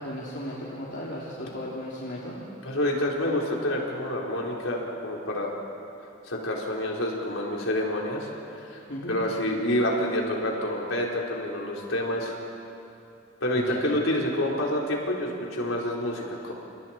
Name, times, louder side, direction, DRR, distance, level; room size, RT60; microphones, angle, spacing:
voice 1, 0.0-2.4 8.9-9.2 13.5-13.8, left 1 dB, 55° left, -6 dB, 3.2 m, -36 dB
voice 2, 2.6-5.5 6.3-8.3 8.7-8.8 9.1-12.4 13.4-16.5, left 1 dB, 75° left, -2 dB, 4.4 m, -28 dB
29.0 x 29.0 x 4.5 m, 2.8 s
head